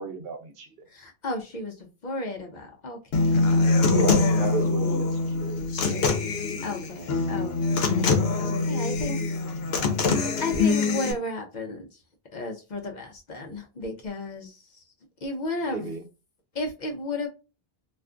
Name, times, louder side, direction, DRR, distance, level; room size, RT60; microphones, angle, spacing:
voice 1, 0.0-0.9 3.8-6.4 15.6-16.0, right 4 dB, 70° right, 0.8 m, -35 dB
voice 2, 0.9-4.0 6.6-9.2 10.4-11.9 12.3-14.8 15.2-15.9 16.5-17.3, left 2 dB, 55° left, 0.6 m, -33 dB
Human voice / Acoustic guitar, 3.1-11.1, left 3 dB, 80° left, 0.9 m, -24 dB
2.4 x 2.3 x 3.6 m
omnidirectional pair, 1.0 m